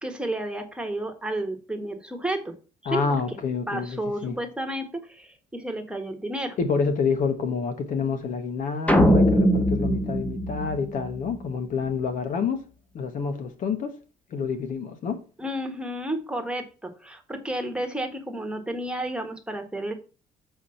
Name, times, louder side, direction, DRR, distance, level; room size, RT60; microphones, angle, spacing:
voice 1, 0.0-2.5 2.8-3.4 3.7-6.6 15.4-19.9, right 1 dB, 5° right, 1.5 m, -31 dB
voice 2, 2.9-4.3 6.6-12.7 12.9-13.9 14.3-15.2, left 5 dB, 60° left, 1.5 m, -28 dB
sound 1, 8.9-11.3, equal, 10° left, 1.1 m, -21 dB
7.3 x 4.7 x 5.7 m
cardioid pair, 120°, 15 cm